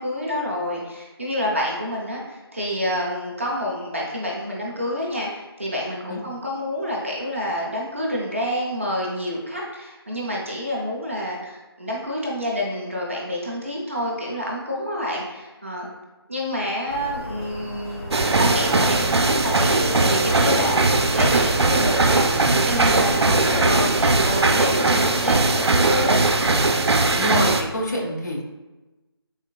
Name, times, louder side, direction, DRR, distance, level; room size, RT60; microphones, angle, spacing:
voice 1, 0.0-15.9 16.3-22.3 22.6-26.2, left 1 dB, 30° right, -3 dB, 0.5 m, -28 dB
sound 1, 16.9-24.4, left 1 dB, 75° left, 1.2 m, -34 dB
sound 2, 18.1-27.6, right 3 dB, 85° right, 0.4 m, -19 dB
voice 2, 27.1-28.4, left 1 dB, 45° left, -2 dB, 0.6 m, -26 dB
3.8 x 3.0 x 2.2 m, 1.1 s
figure-of-eight pair, 175°, 13 cm